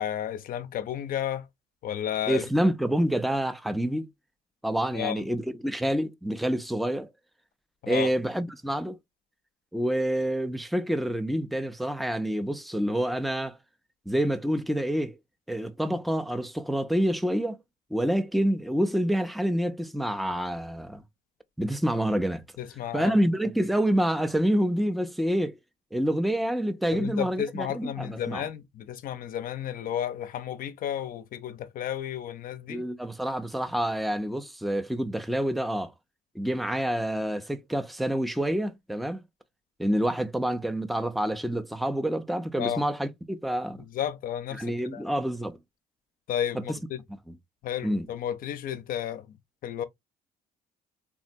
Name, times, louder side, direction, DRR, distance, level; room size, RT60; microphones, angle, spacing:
voice 1, 0.0-1.5 1.8-2.4 4.9-5.2 7.8-8.1 22.6-23.1 26.9-32.8 42.6-42.8 43.8-45.0 46.3-47.0 47.6-49.3 49.6-49.8, left 10 dB, 55° left, 0.5 m, -32 dB
voice 2, 2.3-4.1 4.6-7.1 7.9-9.0 9.7-13.6 14.1-15.2 15.5-17.6 17.9-21.0 21.6-22.4 22.9-25.6 25.9-28.4 32.7-35.9 36.4-39.2 39.8-43.8 44.6-45.6 46.6-46.7 47.8-48.1, equal, ahead, 0.3 m, -27 dB
3.5 x 2.0 x 2.5 m
cardioid pair, 110°, 17 cm